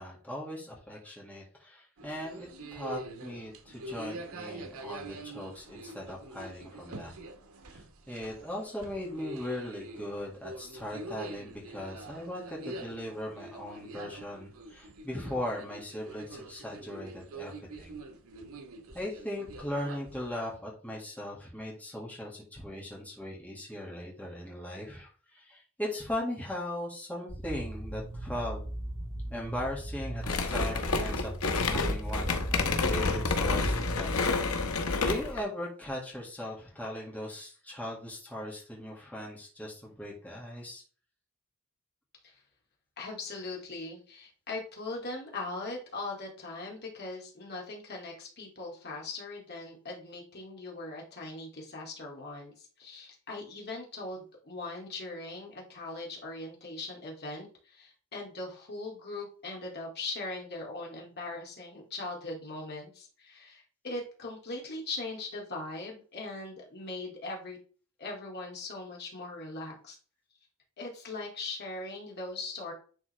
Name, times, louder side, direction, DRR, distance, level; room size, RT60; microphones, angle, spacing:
voice 1, 0.0-7.1 7.7-17.5 17.8-18.0 18.9-28.6 29.3-31.3 31.6-34.2 35.0-40.8, left 1 dB, 5° left, -4 dB, 1.8 m, -39 dB
sound 1, 2.0-20.5, right 2 dB, 90° right, 1.1 m, -45 dB
sound 2, 27.3-34.0, right 1 dB, 25° right, 2.9 m, -38 dB
sound 3, 30.2-35.4, left 3 dB, 90° left, 1.0 m, -29 dB
voice 2, 43.0-67.6 68.0-70.0 70.8-72.7, left 2 dB, 50° left, -1 dB, 2.3 m, -40 dB
10.0 x 3.9 x 3.2 m, 0.40 s
head